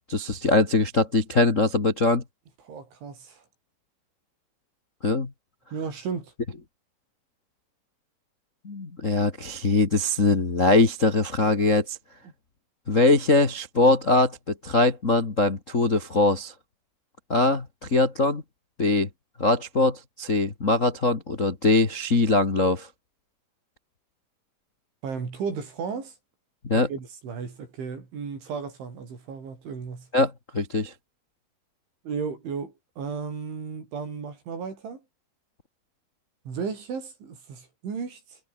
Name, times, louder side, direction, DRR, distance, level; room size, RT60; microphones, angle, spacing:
voice 1, 0.1-2.2 5.0-5.3 8.6-12.0 12.9-16.5 17.3-18.4 18.8-19.1 19.4-22.9 26.6-26.9 30.1-30.9, left 2 dB, 40° left, 1.0 m, -22 dB
voice 2, 2.7-3.4 5.7-6.3 25.0-26.1 26.7-30.1 32.1-35.0 36.5-38.4, right 5 dB, 85° right, 8.6 m, -34 dB
omnidirectional pair, 5.3 m